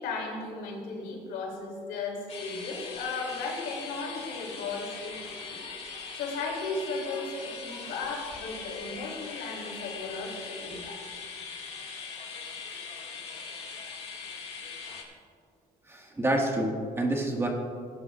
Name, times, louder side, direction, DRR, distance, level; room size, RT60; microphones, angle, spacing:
voice 1, 0.0-5.2 5.5-5.6 5.9-11.2, left 3 dB, 90° left, -1 dB, 3.1 m, -36 dB
sound 1, 2.3-15.0, left 5 dB, 35° left, 2.2 m, -41 dB
voice 2, 15.9-17.5, right 1 dB, 15° right, 0 dB, 1.8 m, -28 dB
18.5 x 11.0 x 2.5 m, 2.2 s
cardioid pair, 110°, 17 cm